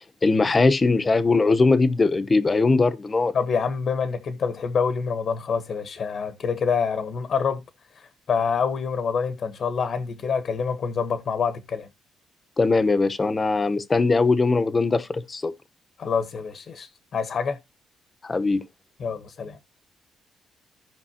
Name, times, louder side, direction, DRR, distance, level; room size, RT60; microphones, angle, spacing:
voice 1, 0.0-3.3 12.6-15.5 18.2-18.6, left 3 dB, 25° left, 0.9 m, -21 dB
voice 2, 3.3-7.6 7.9-11.9 16.0-17.6 19.0-19.6, left 6 dB, 55° left, 1.1 m, -26 dB
15.5 x 5.3 x 2.8 m
cardioid pair, 90°, 0 cm